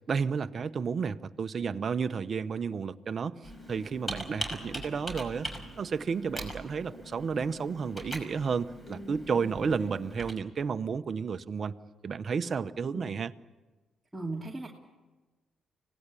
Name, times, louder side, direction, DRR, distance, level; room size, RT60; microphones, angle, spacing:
voice 1, 0.1-3.4 3.7-5.5 5.8-11.8 12.0-13.3, right 5 dB, 45° right, 10 dB, 0.9 m, -32 dB
Computer keyboard, 3.4-10.3, equal, 20° left, 5.5 m, -41 dB
voice 2, 8.9-9.5 12.9-13.0 14.1-14.7, right 2 dB, 5° right, -2 dB, 2.5 m, -39 dB
25.5 x 18.0 x 8.5 m, 1.2 s
cardioid pair, 90°, 0 cm